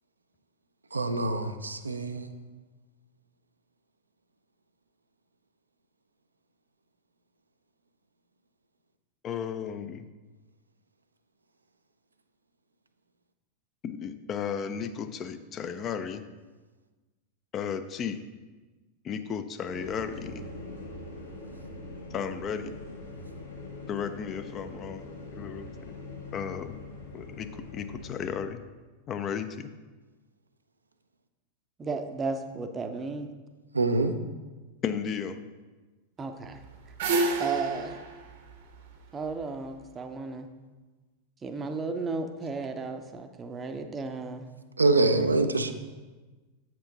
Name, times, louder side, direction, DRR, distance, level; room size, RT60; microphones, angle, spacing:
voice 1, 0.9-2.3 33.7-34.2 44.8-45.7, right 2 dB, 80° right, 8 dB, 0.4 m, -25 dB
voice 2, 9.2-10.0 13.8-16.2 17.5-18.2 19.1-20.4 22.1-22.7 23.9-25.0 25.4-25.7 26.3-26.8 27.1-27.5 27.7-28.6 29.1-29.7 34.8-35.4, left 7 dB, 30° left, 10 dB, 0.4 m, -34 dB
sound 1, 19.7-28.4, left 2 dB, 75° left, 1.4 m, -42 dB
voice 3, 31.8-33.3 36.2-36.6 37.4-38.0 39.1-40.5 41.4-44.5, right 4 dB, 20° right, 7 dB, 0.5 m, -34 dB
sound 2, 36.5-39.7, right 3 dB, 50° right, 0.7 m, -30 dB
7.6 x 4.5 x 3.8 m, 1.3 s
figure-of-eight pair, 90°, 0 cm